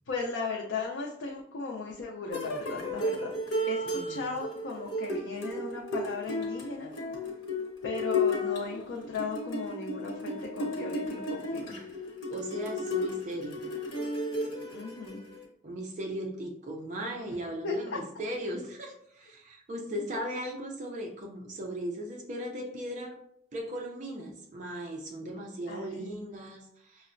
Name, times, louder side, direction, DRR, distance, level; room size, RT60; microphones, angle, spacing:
voice 1, 0.1-3.3 3.7-6.9 7.8-11.8 14.7-15.2 17.6-18.0 25.7-26.1, left 3 dB, 65° left, -2 dB, 0.5 m, -36 dB
sound 1, 2.3-15.4, left 2 dB, 85° left, 0.9 m, -34 dB
voice 2, 3.8-4.2 12.3-13.6 15.6-23.2 23.5-27.1, equal, 35° right, 1 dB, 0.4 m, -38 dB
5.5 x 2.0 x 2.5 m, 0.73 s
head